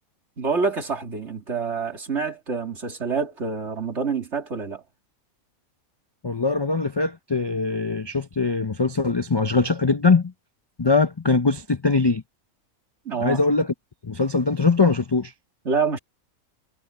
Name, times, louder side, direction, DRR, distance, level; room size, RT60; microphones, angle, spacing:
voice 1, 0.4-4.8 13.1-13.4 15.6-16.0, right 5 dB, 50° right, 2.7 m, -27 dB
voice 2, 6.2-10.3 10.8-12.2 13.2-13.7 14.0-15.3, left 4 dB, 40° left, 0.3 m, -21 dB
omnidirectional pair, 1.5 m